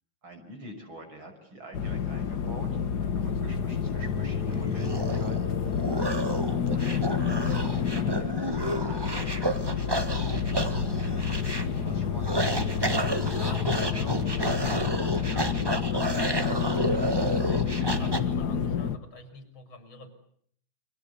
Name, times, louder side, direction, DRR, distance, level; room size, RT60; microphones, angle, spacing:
voice 1, 0.2-2.8 3.1-5.6 6.7-9.4 9.8-10.8 11.7-12.6, right 1 dB, 80° right, 5 dB, 6.6 m, -45 dB
sound 1, 1.7-19.0, left 7 dB, 55° left, 1.8 m, -29 dB
sound 2, 3.9-18.2, right 1 dB, 15° right, 1.4 m, -31 dB
voice 2, 13.2-20.1, left 3 dB, 80° left, 9 dB, 6.4 m, -47 dB
29.0 x 24.5 x 8.3 m, 0.64 s
omnidirectional pair, 2.2 m